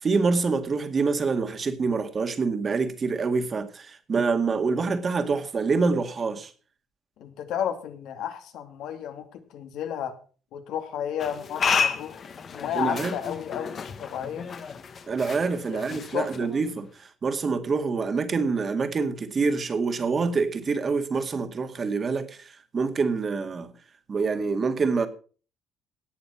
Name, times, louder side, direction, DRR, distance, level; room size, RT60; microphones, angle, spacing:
voice 1, 0.0-6.5 12.8-13.1 15.1-23.7 24.1-25.1, right 4 dB, 30° right, 2.0 m, -26 dB
voice 2, 7.2-10.2 10.5-12.2 12.5-14.5 15.7-16.5, left 9 dB, 75° left, 2.5 m, -33 dB
sound 1, 11.2-16.9, left 6 dB, 40° left, 1.5 m, -31 dB
18.0 x 6.9 x 5.7 m
cardioid pair, 125°, 0 cm